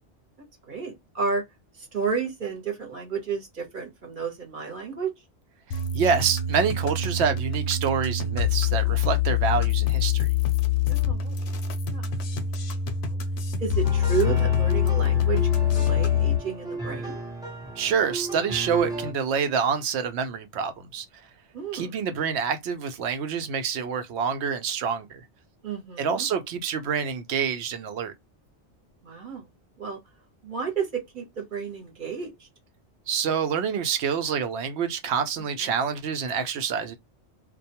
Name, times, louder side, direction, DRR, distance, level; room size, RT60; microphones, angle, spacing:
voice 1, 0.7-1.4 1.8-5.1 10.9-11.3 11.8-12.1 12.4-12.5 13.1-13.2 13.6-17.2 21.5-22.0 25.6-26.3 29.0-29.5 29.8-30.0 30.4-32.5, right 6 dB, 45° right, 1.0 m, -32 dB
sound 1, 5.7-16.4, left 8 dB, 70° left, 0.8 m, -25 dB
voice 2, 5.9-10.3 17.8-21.1 21.7-25.2 26.0-28.1 33.1-37.0, right 6 dB, 70° right, 0.8 m, -27 dB
sound 2, 13.8-19.1, right 2 dB, 5° right, 0.6 m, -34 dB
2.3 x 2.2 x 2.7 m
omnidirectional pair, 1.2 m